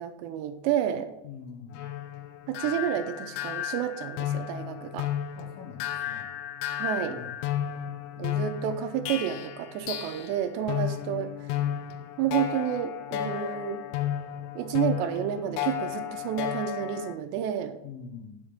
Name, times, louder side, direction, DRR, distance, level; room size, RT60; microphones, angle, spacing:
voice 1, 0.0-1.1 2.5-5.1 6.8-7.2 8.2-11.6 12.2-13.8 14.6-17.8, right 10 dB, 85° right, 9 dB, 2.7 m, -30 dB
voice 2, 1.2-1.8 5.4-6.4 7.0-7.3 17.8-18.4, left 6 dB, 65° left, 0 dB, 2.5 m, -44 dB
sound 1, 1.7-10.4 10.7-17.2, left 11 dB, 85° left, 2.9 m, -33 dB
8.9 x 7.1 x 5.1 m, 0.88 s
omnidirectional pair, 5.1 m